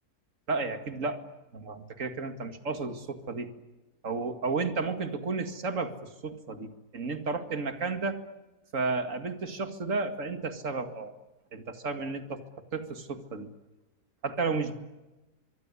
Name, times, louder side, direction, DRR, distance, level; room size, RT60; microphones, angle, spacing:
voice 1, 0.5-1.2 1.5-3.5 4.0-8.2 8.7-11.1 11.5-12.4 12.7-13.5 14.2-14.8, right 4 dB, 50° right, 8 dB, 2.5 m, -32 dB
24.5 x 23.5 x 9.8 m, 1.1 s
omnidirectional pair, 1.7 m